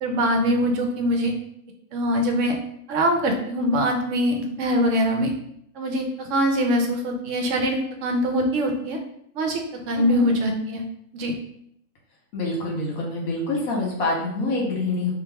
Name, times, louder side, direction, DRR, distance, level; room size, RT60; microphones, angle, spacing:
voice 1, 0.0-1.3 1.9-2.5 2.9-5.3 5.8-9.0 9.3-10.8 11.1-11.3, equal, 65° right, 3 dB, 0.8 m, -23 dB
voice 2, 9.9-10.3 12.3-15.1, left 2 dB, 70° left, -2 dB, 1.4 m, -26 dB
2.9 x 2.5 x 3.3 m, 0.72 s
omnidirectional pair, 1.6 m